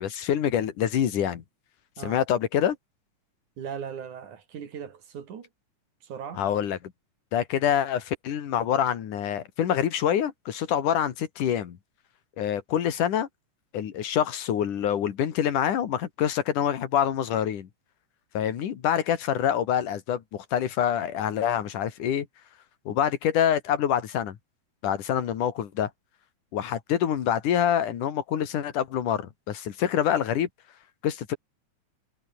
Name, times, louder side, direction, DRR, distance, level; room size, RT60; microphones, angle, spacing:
voice 1, 0.0-1.4 2.0-2.8 6.4-6.8 7.3-11.8 12.4-13.3 13.7-17.7 18.4-22.3 22.9-24.4 24.8-25.9 26.5-30.5 31.0-31.4, left 9 dB, 85° left, 3.5 m, -26 dB
voice 2, 3.6-5.5 6.0-6.4, right 7 dB, 70° right, 4.0 m, -38 dB
omnidirectional pair, 3.6 m